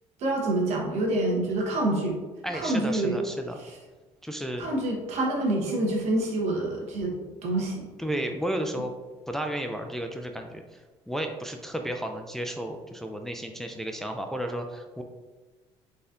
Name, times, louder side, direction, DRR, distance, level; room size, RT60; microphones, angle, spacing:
voice 1, 0.2-2.2 2.5-3.2 3.6-3.7 4.6-7.1 7.4-7.9, right 2 dB, 75° right, -2 dB, 1.2 m, -27 dB
voice 2, 2.4-3.6 4.2-4.7 8.0-8.9 9.3-10.8 11.1-15.0, right 1 dB, 5° left, 4 dB, 0.3 m, -33 dB
4.0 x 4.0 x 2.6 m, 1.3 s
cardioid pair, 120°, 11 cm